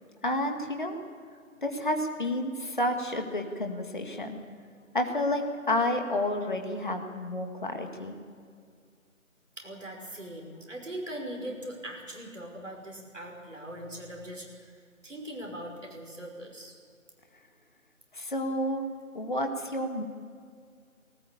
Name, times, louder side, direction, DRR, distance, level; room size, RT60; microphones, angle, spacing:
voice 1, 0.2-1.0 1.6-4.4 4.9-8.2 18.1-18.9 19.1-20.0, left 1 dB, 35° left, 4 dB, 2.0 m, -30 dB
voice 2, 9.6-16.8, right 1 dB, 60° right, 1 dB, 5.6 m, -41 dB
19.5 x 18.5 x 8.6 m, 2.2 s
figure-of-eight pair, 170°, 41 cm